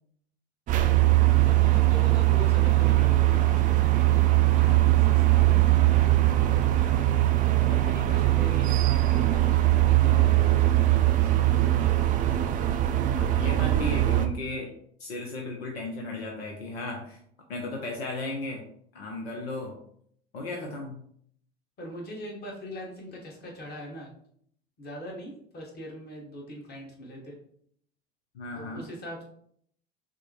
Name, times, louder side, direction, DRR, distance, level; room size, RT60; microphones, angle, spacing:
sound 1, 0.7-14.3, right 15 dB, 25° right, 0.4 m, -21 dB
voice 1, 1.4-4.2 4.5-7.0 7.7-11.3 21.8-24.1 24.8-27.4 28.5-29.2, equal, 30° left, -1 dB, 1.5 m, -42 dB
voice 2, 13.2-14.7 15.0-17.2 17.5-18.7 18.9-19.8 20.3-21.0 28.3-28.9, left 2 dB, 70° left, 1 dB, 0.8 m, -35 dB
6.1 x 2.2 x 3.0 m, 0.65 s
figure-of-eight pair, 75°, 33 cm